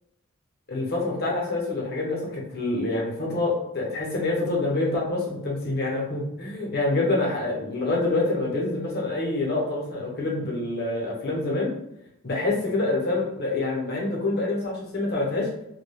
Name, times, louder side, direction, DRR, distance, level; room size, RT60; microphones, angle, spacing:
voice 1, 0.7-11.7 12.2-15.5, left 2 dB, 45° left, -2 dB, 0.8 m, -26 dB
2.3 x 2.2 x 3.3 m, 0.81 s
head